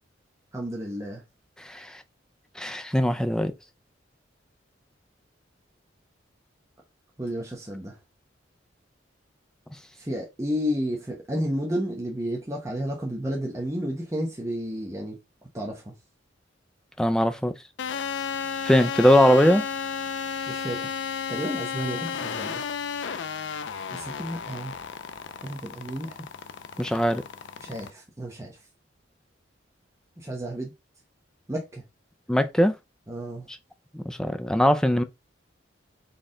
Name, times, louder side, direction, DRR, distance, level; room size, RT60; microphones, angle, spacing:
voice 1, 0.5-1.2 7.2-8.0 10.0-15.2 15.5-15.9 20.5-21.0 21.3-22.6 23.9-24.8 25.4-26.2 27.6-28.6 30.2-30.7 31.5-31.8 33.1-33.5, equal, 15° right, 0.9 m, -31 dB
voice 2, 1.6-2.0 2.6-3.5 17.0-17.5 18.6-19.6 26.8-27.2 32.3-32.8 33.5-33.6 33.9-35.0, equal, 5° left, 0.4 m, -21 dB
sound 1, 17.8-27.9, left 6 dB, 65° left, 0.4 m, -33 dB
4.2 x 3.3 x 3.7 m
head